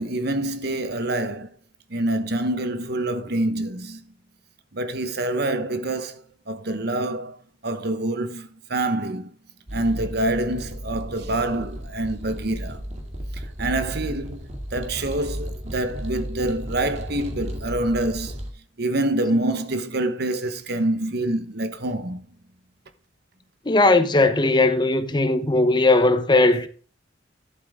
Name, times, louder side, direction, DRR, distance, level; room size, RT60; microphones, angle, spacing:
voice 1, 0.0-1.5 1.9-4.0 4.7-7.4 7.6-9.3 9.7-12.8 13.3-14.4 14.7-18.4 18.8-22.2, right 1 dB, 60° right, 1.1 m, -26 dB
sound 1, 9.7-18.5, equal, 40° right, 2.1 m, -34 dB
voice 2, 23.7-26.7, left 2 dB, 25° left, 0.9 m, -18 dB
11.5 x 7.8 x 3.6 m
head